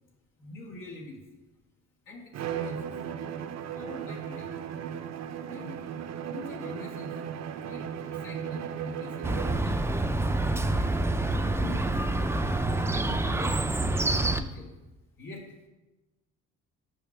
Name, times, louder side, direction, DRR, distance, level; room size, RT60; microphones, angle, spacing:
voice 1, 0.4-1.2 2.1-2.2 2.5-2.9 3.7-4.5 5.4-5.8 6.3-7.1 7.6-7.9 8.2-10.9 11.4-11.9 12.8-14.7 15.2-15.4, left 2 dB, 80° left, -1 dB, 1.9 m, -43 dB
Bowed string instrument, 2.3-9.7, right 8 dB, 55° right, 0.5 m, -36 dB
Chirp tweet, 9.2-14.4, right 2 dB, 10° right, 0.4 m, -27 dB
6.1 x 5.4 x 5.9 m, 1.1 s
cardioid pair, 80°, 32 cm